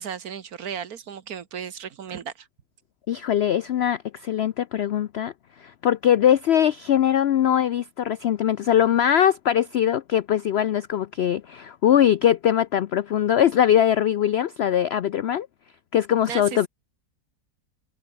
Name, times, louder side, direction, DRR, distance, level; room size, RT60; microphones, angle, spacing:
voice 1, 0.0-2.5 16.3-16.7, right 8 dB, 65° right, 1.8 m, -35 dB
voice 2, 3.1-5.3 5.6-15.5 15.9-16.7, left 10 dB, 90° left, 0.5 m, -21 dB
omnidirectional pair, 1.7 m